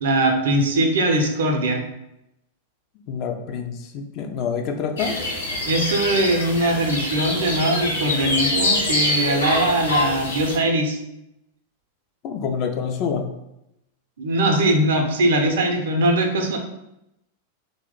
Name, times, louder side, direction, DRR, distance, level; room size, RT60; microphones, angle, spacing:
voice 1, 0.0-1.8 5.7-11.0 14.2-16.6, right 1 dB, 60° right, 4 dB, 0.5 m, -21 dB
voice 2, 3.1-5.2 12.2-13.3, left 6 dB, 40° left, 5 dB, 0.4 m, -27 dB
sound 1, 5.0-10.6, left 2 dB, 70° left, 0.7 m, -25 dB
2.8 x 2.1 x 3.7 m, 0.84 s
figure-of-eight pair, 90°, 0 cm